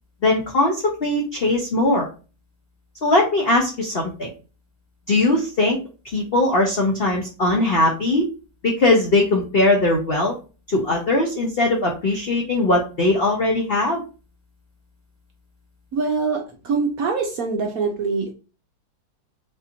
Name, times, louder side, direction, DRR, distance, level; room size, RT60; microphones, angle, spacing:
voice 1, 0.2-2.1 3.0-4.3 5.1-5.8 6.1-8.2 8.6-10.3 10.7-14.0, left 2 dB, 75° left, 0 dB, 0.5 m, -20 dB
voice 2, 15.9-18.3, right 4 dB, 65° right, 2 dB, 0.9 m, -24 dB
4.0 x 2.5 x 2.8 m, 0.34 s
omnidirectional pair, 2.1 m